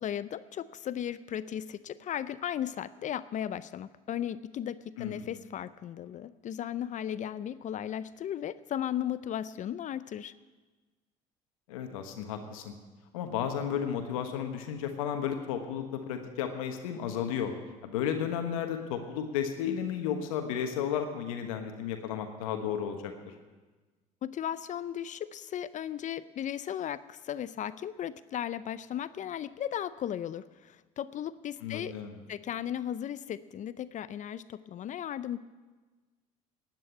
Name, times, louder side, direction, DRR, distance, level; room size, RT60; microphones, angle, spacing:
voice 1, 0.0-10.3 24.2-31.9 32.3-35.4, left 10 dB, 45° left, 16 dB, 0.5 m, -36 dB
voice 2, 11.7-12.7 13.1-17.5 17.8-23.3 31.6-32.2, left 8 dB, 85° left, 5 dB, 1.3 m, -33 dB
11.0 x 9.0 x 9.8 m, 1.3 s
supercardioid pair, 75°, 17 cm